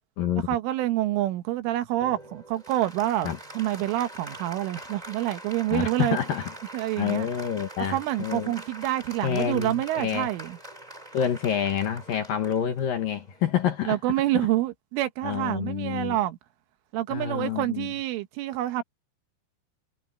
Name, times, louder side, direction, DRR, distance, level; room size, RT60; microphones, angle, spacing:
voice 1, 0.5-6.2 6.7-7.3 7.9-10.6 13.9-16.4 16.9-18.8, right 14 dB, 80° right, 3.8 m, -27 dB
Applause, 2.0-13.9, right 1 dB, 10° right, 4.1 m, -44 dB
voice 2, 5.7-6.5 7.0-8.5 9.2-10.3 11.1-14.0 15.2-16.2 17.1-17.9, left 9 dB, 60° left, 2.5 m, -28 dB
omnidirectional pair, 5.6 m